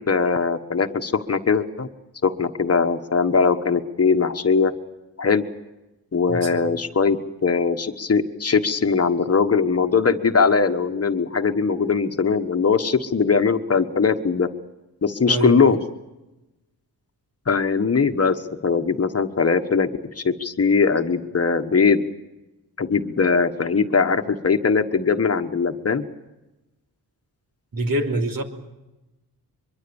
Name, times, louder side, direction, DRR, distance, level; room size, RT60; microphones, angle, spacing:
voice 1, 0.0-1.9 2.2-4.7 5.2-5.4 6.1-14.5 15.0-15.8 17.5-19.9 20.2-22.0 22.8-26.0, left 5 dB, 40° left, 7 dB, 1.3 m, -20 dB
voice 2, 6.3-6.7 15.3-15.8 27.7-28.4, right 1 dB, 60° right, 3 dB, 3.1 m, -25 dB
23.5 x 23.0 x 7.1 m, 1.0 s
wide cardioid pair, 100°, 38 cm